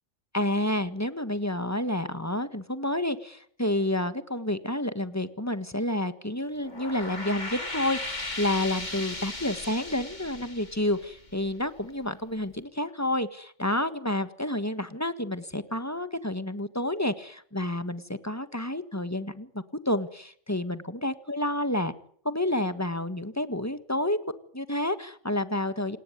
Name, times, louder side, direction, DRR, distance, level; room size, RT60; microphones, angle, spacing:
voice 1, 0.3-21.9 22.2-24.2 24.5-26.0, left 1 dB, 15° left, 11 dB, 1.5 m, -29 dB
sound 1, 6.5-11.8, left 2 dB, 35° left, 3.1 m, -37 dB
27.5 x 18.5 x 9.4 m, 0.62 s
omnidirectional pair, 1.3 m